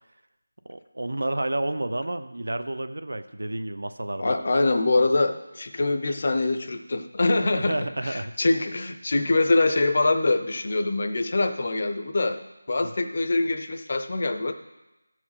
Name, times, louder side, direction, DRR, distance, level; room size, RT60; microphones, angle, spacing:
voice 1, 0.7-4.4 7.6-8.3 9.1-9.3 12.8-12.9, right 1 dB, 85° right, 10 dB, 0.7 m, -30 dB
voice 2, 4.2-12.4 12.7-14.5, left 2 dB, 30° left, 7 dB, 0.5 m, -24 dB
13.0 x 4.7 x 5.7 m, 1.0 s
figure-of-eight pair, 180°, 0 cm